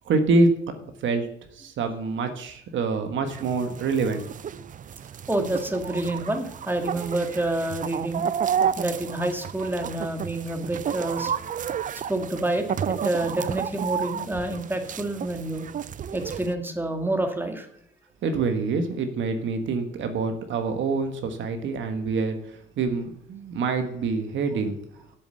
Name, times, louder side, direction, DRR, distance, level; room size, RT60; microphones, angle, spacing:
voice 1, 0.0-4.2 4.5-4.6 18.2-22.4 22.8-24.8, right 3 dB, 70° right, 7 dB, 1.4 m, -26 dB
sound 1, 3.3-16.5, right 8 dB, 40° right, 0.5 m, -31 dB
voice 2, 5.3-8.2 8.8-11.3 11.9-15.7 16.1-17.7, right 1 dB, 10° right, 5 dB, 1.8 m, -28 dB
8.0 x 7.0 x 7.8 m, 0.72 s
cardioid pair, 90°, 20 cm